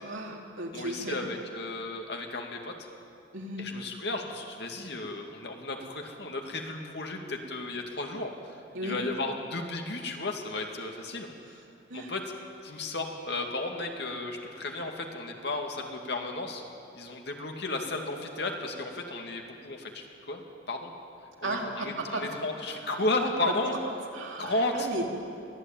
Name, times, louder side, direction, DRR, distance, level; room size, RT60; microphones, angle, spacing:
voice 1, 0.0-1.2 3.3-3.6 8.7-9.0 11.9-12.1 21.4-22.2 22.8-23.0 23.4-23.6 23.8-25.1, right 1 dB, 75° right, 0 dB, 3.3 m, -35 dB
voice 2, 0.7-2.7 3.6-11.6 11.9-12.2 12.6-16.6 16.9-20.4 20.7-20.9 21.4-23.8 24.4-24.9, left 2 dB, 55° left, 2 dB, 2.4 m, -34 dB
23.0 x 15.0 x 9.1 m, 2.6 s
head